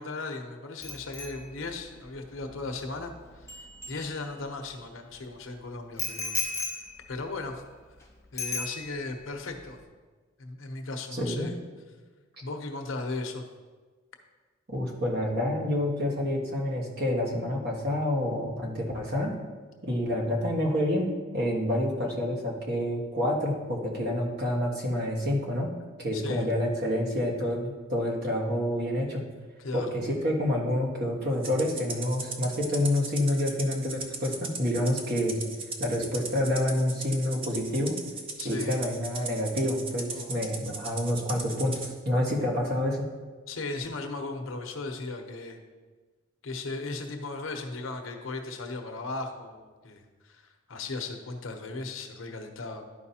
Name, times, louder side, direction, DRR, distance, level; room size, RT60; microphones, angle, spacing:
voice 1, 0.0-6.6 7.1-7.6 8.3-9.8 10.4-11.6 12.4-13.4 26.1-26.5 29.6-30.0 38.4-38.8 40.1-40.4 43.5-45.6 46.4-52.8, left 3 dB, 80° left, 5 dB, 0.8 m, -37 dB
Bicycle bell, 0.8-4.6 6.0-8.0 8.4-9.2 9.5-9.8, left 3 dB, 15° left, 0.9 m, -37 dB
voice 2, 11.1-11.5 14.7-19.3 19.8-21.1 21.3-25.7 26.0-29.2 29.7-35.4 35.8-38.0 38.4-43.1, left 1 dB, 50° right, -2 dB, 1.5 m, -28 dB
Rattle (instrument), 31.4-41.9, right 4 dB, 30° right, 0.7 m, -38 dB
11.5 x 4.8 x 2.8 m, 1.4 s
head